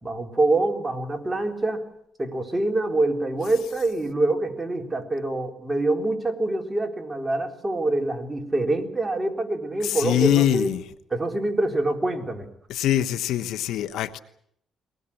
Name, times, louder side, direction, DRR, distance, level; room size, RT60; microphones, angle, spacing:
voice 1, 0.0-1.8 2.2-10.7 11.1-12.5, right 2 dB, 20° right, 3 dB, 3.8 m, -25 dB
voice 2, 9.8-10.8 12.7-14.2, left 11 dB, 85° left, 12 dB, 1.2 m, -23 dB
23.0 x 19.5 x 8.7 m, 0.72 s
cardioid pair, 90°, 0 cm